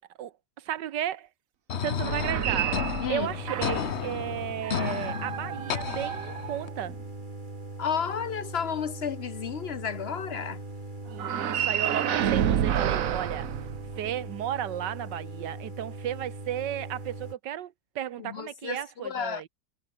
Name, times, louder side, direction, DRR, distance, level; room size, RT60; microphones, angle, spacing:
voice 1, 0.2-1.3 1.8-6.9 11.1-13.5 14.0-19.5, right 11 dB, 85° right, 1.6 m, -34 dB
sound 1, 1.7-6.7, left 7 dB, 45° left, 1.1 m, -33 dB
sound 2, 2.0-4.0 4.6-7.0 11.1-14.3, right 9 dB, 55° right, 1.3 m, -30 dB
sound 3, 3.2-17.4, right 2 dB, 25° right, 3.6 m, -40 dB
voice 2, 7.8-10.6 18.2-19.4, left 7 dB, 65° left, 0.6 m, -32 dB
omnidirectional pair, 1.8 m